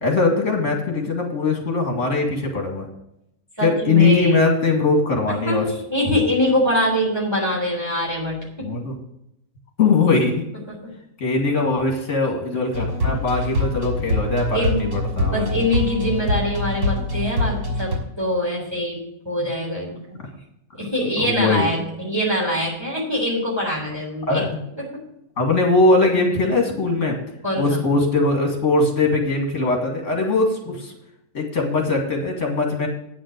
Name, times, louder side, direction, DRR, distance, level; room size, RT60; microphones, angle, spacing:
voice 1, 0.0-2.9 3.6-5.7 8.6-9.0 9.8-10.4 11.2-15.5 19.4-19.5 21.2-21.7 24.3-24.6 25.4-27.2 27.6-30.9 31.3-32.9, left 3 dB, 55° left, 2 dB, 2.5 m, -20 dB
voice 2, 3.6-4.5 5.5-8.7 10.7-10.9 13.1-13.2 14.5-14.9 15.3-20.2 20.7-24.4 24.8-25.0 27.4-27.8, left 1 dB, 15° right, -4 dB, 3.6 m, -24 dB
sound 1, 12.7-18.0, left 1 dB, 85° right, 3.3 m, -24 dB
9.5 x 6.0 x 8.0 m, 0.82 s
omnidirectional pair, 1.6 m